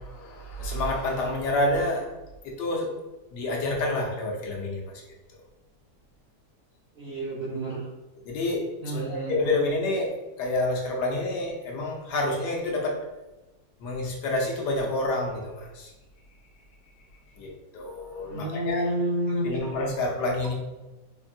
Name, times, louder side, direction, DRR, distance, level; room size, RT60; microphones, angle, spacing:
voice 1, 0.0-2.1 2.4-2.9 3.3-4.9 8.2-13.0 13.8-15.9 17.4-18.8 19.4-20.5, left 2 dB, 75° left, 0 dB, 1.3 m, -28 dB
voice 2, 7.0-7.9 8.8-9.6 18.2-19.5, right 1 dB, 50° right, -5 dB, 0.7 m, -30 dB
4.6 x 2.6 x 2.6 m, 1.1 s
omnidirectional pair, 1.8 m